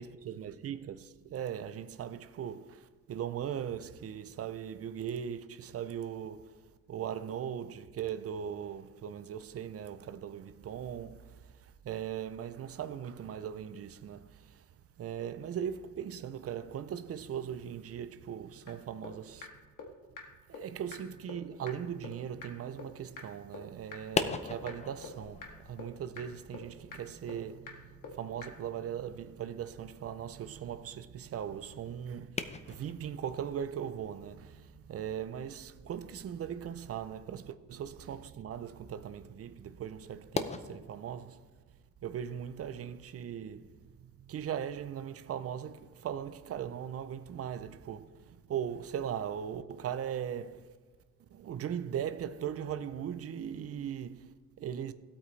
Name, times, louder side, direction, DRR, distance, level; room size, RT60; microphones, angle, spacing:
voice 1, 0.0-19.5 20.5-41.5 42.0-50.8 51.3-54.9, right 9 dB, 40° right, 0.5 m, -39 dB
sound 1, 18.7-18.8 19.0-19.1 19.4-19.5 19.8-19.9 20.2-20.3 20.5-20.6 20.9-21.0 21.3-21.4 21.7-21.8 22.0-22.1 22.4-22.5 22.8-22.9 23.2-23.3 23.5-23.6 23.9-24.0 24.3-24.4 24.7-24.8 25.0-25.1 25.4-25.5 25.8-25.9 26.2-26.3 26.5-26.6 26.9-27.0 27.3-27.4 27.7-27.8 28.0-28.1 28.4-28.5, left 5 dB, 60° left, 1.8 m, -43 dB
sound 2, 23.9-40.6, left 4 dB, 20° left, 0.5 m, -43 dB
16.0 x 8.5 x 3.2 m
cardioid pair, 150°, 35 cm